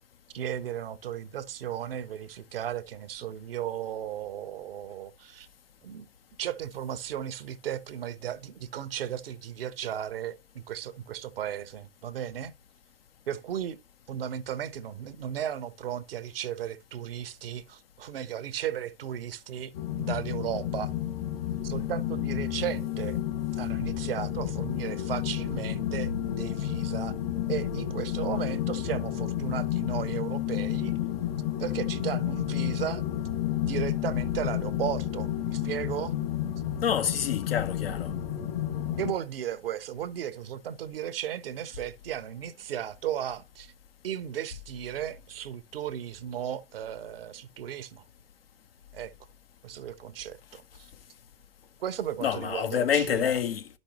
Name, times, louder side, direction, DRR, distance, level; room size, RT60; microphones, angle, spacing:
voice 1, 0.3-5.5 5.8-6.1 6.4-12.5 13.3-13.8 14.1-20.9 21.6-23.2 23.5-27.2 27.5-30.9 31.6-33.0 33.6-36.1 39.0-43.7 44.0-48.1 48.9-49.1 49.6-50.9 51.8-53.4, right 10 dB, 70° right, 0.8 m, -35 dB
sound 1, 19.7-39.1, left 12 dB, 55° left, 2.0 m, -31 dB
voice 2, 36.8-38.1 52.2-53.7, left 8 dB, 75° left, 1.0 m, -27 dB
11.5 x 5.3 x 2.9 m
figure-of-eight pair, 95°, 30 cm